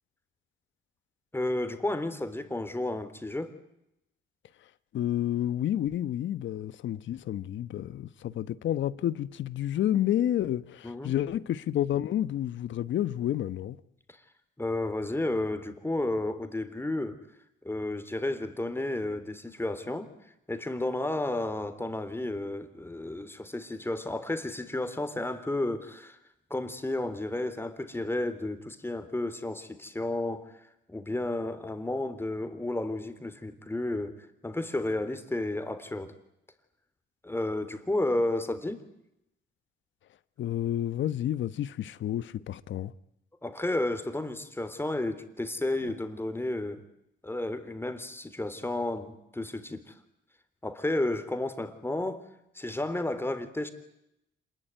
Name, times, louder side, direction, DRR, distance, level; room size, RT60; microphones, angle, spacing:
voice 1, 1.3-3.5 10.8-11.1 14.1-14.2 14.6-17.2 17.6-20.1 20.5-26.2 26.5-34.2 34.4-36.1 37.2-38.8 43.4-46.8 47.2-50.0 50.6-52.3 52.5-53.7, left 1 dB, 10° left, 3.5 m, -32 dB
voice 2, 4.9-13.8 40.4-42.9, left 11 dB, 70° left, 1.2 m, -30 dB
27.0 x 20.5 x 9.4 m
cardioid pair, 90°, 20 cm